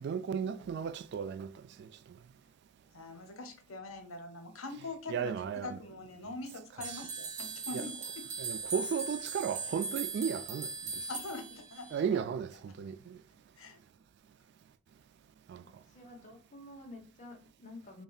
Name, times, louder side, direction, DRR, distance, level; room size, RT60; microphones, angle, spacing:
voice 1, 0.0-1.9 5.1-5.8 7.7-7.8 8.4-10.7 11.9-13.2 15.5-15.6, right 7 dB, 55° right, 0.3 m, -35 dB
voice 2, 2.9-8.3 11.1-12.3 13.3-13.8, left 2 dB, 85° left, 0.9 m, -44 dB
sound 1, 6.8-12.0, right 4 dB, 35° right, 0.7 m, -39 dB
voice 3, 15.6-18.0, left 2 dB, 40° left, 1.1 m, -50 dB
5.3 x 2.4 x 2.4 m
head